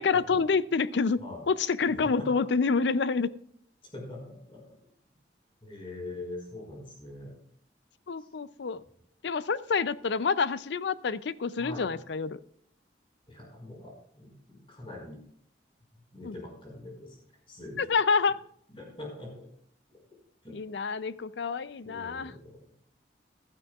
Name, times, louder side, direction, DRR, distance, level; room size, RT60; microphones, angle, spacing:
voice 1, 0.0-1.2 1.5-3.3 8.1-8.8 9.2-12.4 16.2-16.4 17.8-18.4 20.5-22.3, left 5 dB, 75° left, 16 dB, 0.5 m, -27 dB
voice 2, 1.9-2.4 3.9-4.7 5.6-7.3 8.2-8.3 11.6-11.9 13.3-15.2 16.1-17.1 17.5-17.9 18.7-19.5 19.9-20.0 20.4-20.6 21.8-22.6, left 2 dB, 30° left, -1 dB, 5.1 m, -43 dB
15.5 x 12.0 x 2.4 m, 0.65 s
head